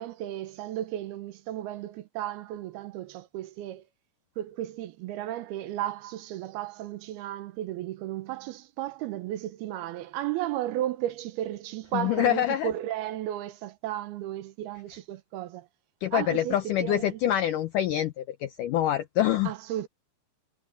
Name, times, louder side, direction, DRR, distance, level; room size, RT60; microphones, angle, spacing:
voice 1, 0.0-3.8 4.4-15.7 16.1-17.2 19.5-19.9, right 13 dB, 75° right, 2.7 m, -34 dB
voice 2, 11.9-12.7 16.0-19.5, left 12 dB, 80° left, 1.8 m, -26 dB
omnidirectional pair, 4.8 m